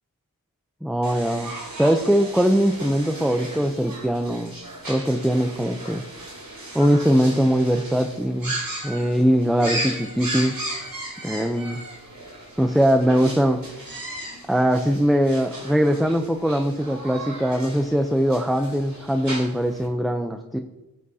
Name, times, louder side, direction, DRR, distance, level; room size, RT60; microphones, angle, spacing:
voice 1, 0.8-1.5 1.8-4.6 4.9-6.0 6.7-8.6 8.8-10.6 11.2-11.8 12.6-13.6 14.5-20.6, equal, ahead, 6 dB, 0.7 m, -21 dB
sound 1, 1.0-19.9, right 1 dB, 65° right, 3.4 m, -36 dB
12.0 x 8.5 x 2.9 m, 1.0 s
cardioid pair, 40°, 36 cm